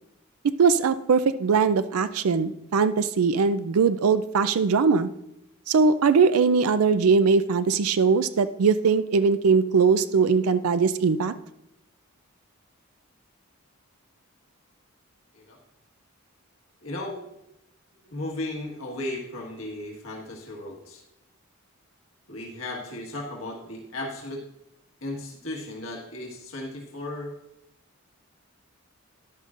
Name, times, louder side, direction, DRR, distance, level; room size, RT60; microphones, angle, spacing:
voice 1, 0.6-5.1 5.7-11.3, right 5 dB, 85° right, 12 dB, 0.4 m, -21 dB
voice 2, 16.8-17.2 18.0-21.0 22.3-24.4 25.0-27.3, left 1 dB, 70° left, -1 dB, 1.6 m, -35 dB
13.0 x 11.0 x 2.5 m, 0.83 s
head